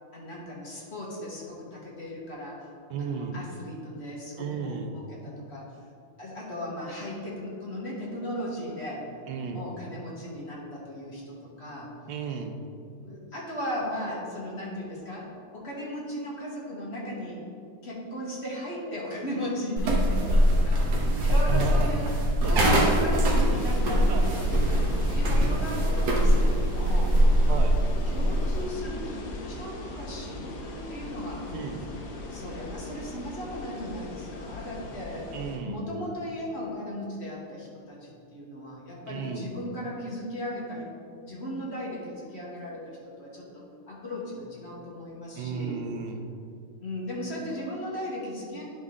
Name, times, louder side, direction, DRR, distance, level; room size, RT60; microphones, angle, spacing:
voice 1, 0.1-2.7 3.0-5.8 6.2-9.1 9.5-11.9 13.0-17.4 17.8-22.1 22.4-27.2 28.1-31.5 32.3-35.3 35.6-40.9 41.2-45.8 46.8-48.7, equal, 35° left, -5 dB, 1.2 m, -37 dB
voice 2, 2.9-3.4 4.4-5.0 9.3-9.7 12.1-12.6 21.3-21.9 22.4-22.9 24.1-24.3 27.5-27.7 31.5-31.8 35.3-35.8 39.1-39.5 45.4-46.3, right 6 dB, 75° right, 5 dB, 1.1 m, -34 dB
sound 1, 19.8-28.7, equal, 55° right, 1.3 m, -22 dB
sound 2, 23.5-35.6, left 2 dB, 65° left, 1.1 m, -39 dB
10.5 x 3.6 x 3.6 m, 2.4 s
omnidirectional pair, 2.4 m